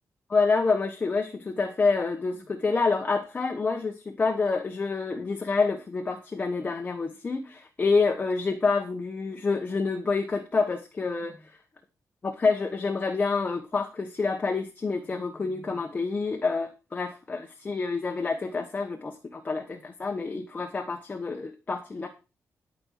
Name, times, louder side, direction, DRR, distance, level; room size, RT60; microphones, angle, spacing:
voice 1, 0.3-11.3 12.2-22.1, left 4 dB, 25° left, 3 dB, 1.1 m, -27 dB
12.5 x 5.3 x 6.4 m, 0.30 s
wide cardioid pair, 165°, 6 cm